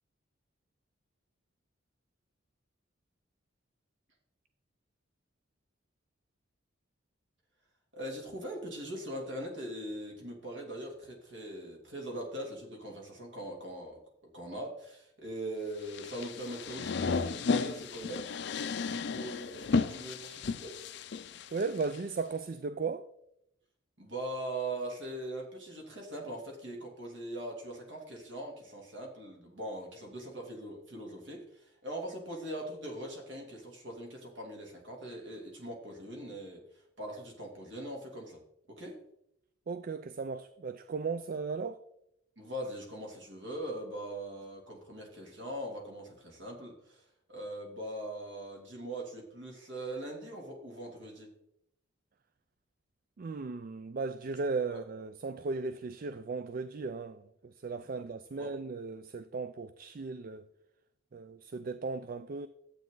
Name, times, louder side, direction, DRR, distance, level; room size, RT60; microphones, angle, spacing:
voice 1, 7.9-14.0 14.3-20.8 24.0-38.4 38.7-38.9 42.4-51.3 54.7-54.8 58.4-58.5, right 1 dB, 65° right, 2.9 m, -41 dB
sound 1, 15.8-22.0, left 4 dB, 60° left, 0.5 m, -33 dB
voice 2, 21.5-23.1 39.7-41.8 53.2-60.4 61.1-62.5, right 4 dB, 45° right, 0.4 m, -36 dB
11.5 x 8.4 x 3.9 m
head